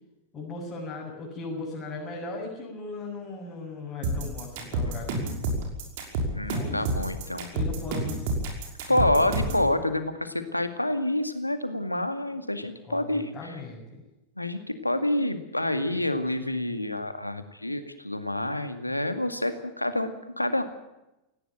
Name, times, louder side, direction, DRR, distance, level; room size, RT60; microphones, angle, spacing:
voice 1, 0.3-5.3 6.5-8.3 8.9-9.4 12.9-14.0, left 3 dB, 25° left, -4 dB, 7.1 m, -38 dB
sound 1, 4.0-9.7, right 2 dB, 50° right, 5.7 m, -29 dB
voice 2, 6.3-7.5 8.9-13.6 14.4-20.6, left 1 dB, 85° left, 10 dB, 2.0 m, -28 dB
18.5 x 17.0 x 9.1 m, 0.95 s
figure-of-eight pair, 90°, 0 cm